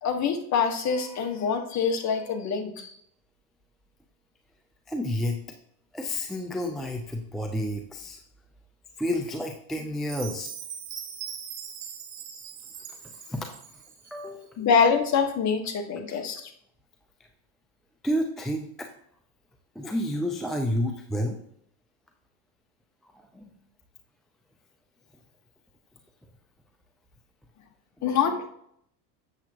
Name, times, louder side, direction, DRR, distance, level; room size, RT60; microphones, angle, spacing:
voice 1, 0.0-2.9 14.6-16.5 28.0-28.5, left 6 dB, 35° left, 4 dB, 1.4 m, -25 dB
voice 2, 4.9-5.4 5.9-8.2 9.0-10.5 13.0-13.6 14.1-14.6 18.0-18.9 19.8-21.4 23.3-23.5, left 1 dB, ahead, 3 dB, 0.3 m, -30 dB
Chime, 10.1-14.2, right 8 dB, 60° right, 1.9 m, -40 dB
8.0 x 7.3 x 2.9 m, 0.69 s
supercardioid pair, 110°, 49 cm